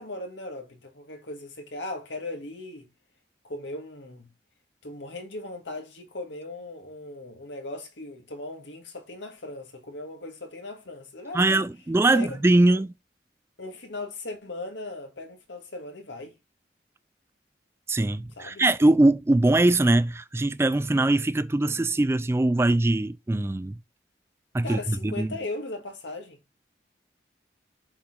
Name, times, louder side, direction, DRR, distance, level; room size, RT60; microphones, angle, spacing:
voice 1, 0.0-2.9 3.4-4.3 4.8-11.6 12.1-12.4 12.7-12.8 13.6-16.3 18.4-18.6 24.6-26.4, left 2 dB, 85° left, 2.0 m, -38 dB
voice 2, 11.3-12.9 17.9-23.8 24.5-25.3, right 2 dB, 15° right, 0.3 m, -22 dB
7.2 x 4.8 x 3.6 m
head